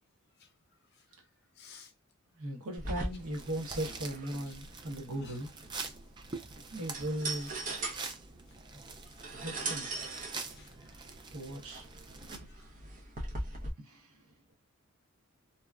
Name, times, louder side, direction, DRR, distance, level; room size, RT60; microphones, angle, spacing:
voice 1, 1.5-1.9 4.5-4.6 5.2-5.4 5.9-6.0 9.1-9.4 10.5-11.0 12.4-12.7, left 6 dB, 50° left, 0.6 m, -57 dB
voice 2, 2.4-5.5 6.7-7.5 9.3-10.1 11.3-11.9 13.8-14.1, right 1 dB, 75° right, 1.0 m, -38 dB
sound 1, 2.8-13.7, right 2 dB, 35° right, 0.9 m, -41 dB
sound 2, 3.2-12.4, right 4 dB, 20° right, 0.3 m, -46 dB
2.8 x 2.4 x 2.3 m
head